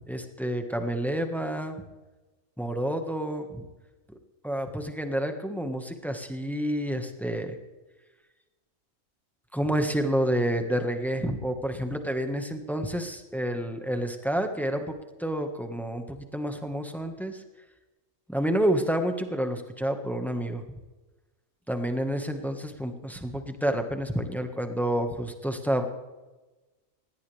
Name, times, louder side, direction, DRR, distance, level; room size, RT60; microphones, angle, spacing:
voice 1, 0.1-1.8 2.6-3.6 4.4-7.6 9.5-14.9 15.2-17.4 18.3-20.6 21.7-25.8, right 1 dB, ahead, 6 dB, 1.5 m, -29 dB
19.5 x 17.5 x 3.5 m, 1.2 s
omnidirectional pair, 1.4 m